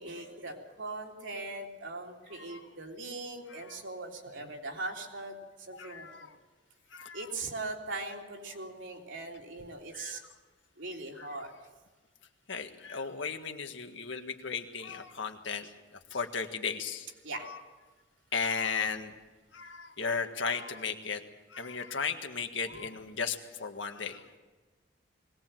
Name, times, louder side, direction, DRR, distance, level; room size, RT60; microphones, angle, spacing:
voice 1, 0.0-6.3 7.1-10.2 10.8-11.5 17.2-17.5, right 2 dB, 75° right, 1 dB, 3.2 m, -40 dB
voice 2, 2.3-2.7 3.5-3.8 4.4-4.5 5.7-6.4 6.9-7.3 9.9-10.3 11.2-11.5 12.5-15.7 16.1-17.1 17.4-17.6 18.3-19.1 19.5-21.2 21.5-24.3, left 5 dB, 70° left, 5 dB, 1.7 m, -36 dB
21.0 x 18.5 x 7.7 m, 1.3 s
head